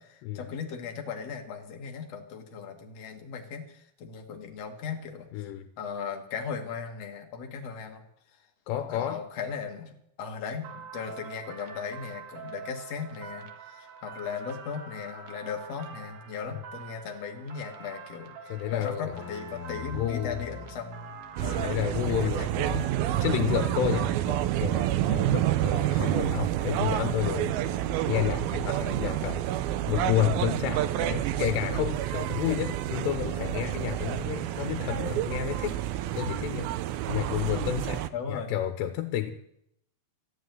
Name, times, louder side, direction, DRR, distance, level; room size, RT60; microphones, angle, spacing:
voice 1, 0.0-5.5 5.8-8.0 8.9-18.3 18.7-21.1 21.4-21.7 22.1-22.5 24.3-24.4 25.9-26.0 37.1-37.2 38.1-38.5, left 6 dB, 50° left, 4 dB, 2.1 m, -37 dB
voice 2, 5.3-5.7 8.7-9.3 18.5-19.1 19.9-20.4 21.6-22.9 23.2-24.1 24.6-27.5 28.1-29.4 29.9-36.7 37.1-39.3, left 11 dB, 85° left, 8 dB, 3.0 m, -30 dB
sound 1, 10.6-24.3, right 6 dB, 55° right, 1.8 m, -45 dB
sound 2, 19.1-21.5 22.5-25.0 25.4-25.7 26.7-28.9 29.9-31.8 32.8-33.6, left 7 dB, 70° left, 2.7 m, -45 dB
sound 3, 21.4-38.1, right 13 dB, 80° right, 2.2 m, -29 dB
13.5 x 10.5 x 9.3 m, 0.76 s
omnidirectional pair, 4.8 m